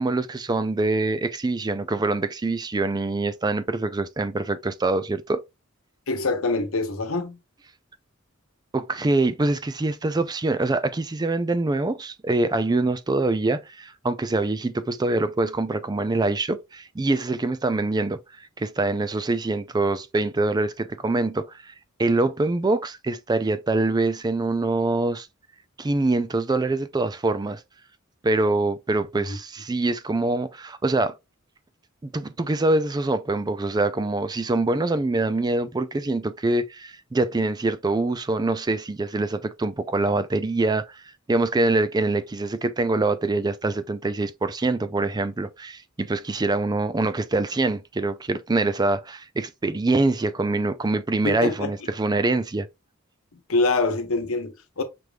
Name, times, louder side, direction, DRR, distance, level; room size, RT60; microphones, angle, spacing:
voice 1, 0.0-5.4 8.7-18.2 18.6-21.7 22.0-25.3 25.8-27.6 28.2-31.1 32.0-41.0 41.3-52.7, right 2 dB, 20° right, 0.4 m, -24 dB
voice 2, 6.1-7.4 29.3-29.4 51.2-51.7 53.5-54.8, left 3 dB, 85° left, 1.0 m, -25 dB
5.9 x 3.3 x 2.3 m
head